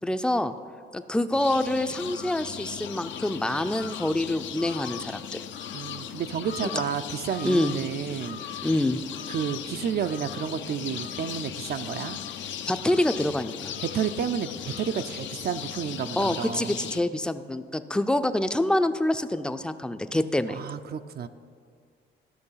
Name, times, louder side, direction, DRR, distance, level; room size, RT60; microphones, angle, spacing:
voice 1, 0.0-0.5 0.9-5.4 6.6-6.7 7.4-7.7 8.6-9.0 12.7-13.7 16.2-20.6, left 1 dB, 5° left, 10 dB, 0.4 m, -26 dB
sound 1, 1.3-17.0, left 9 dB, 70° left, 0.6 m, -37 dB
voice 2, 5.7-8.4 9.3-12.2 13.8-16.8 20.5-21.3, right 8 dB, 50° right, 9 dB, 0.4 m, -31 dB
12.0 x 6.2 x 5.6 m, 2.1 s
cardioid pair, 90°, 20 cm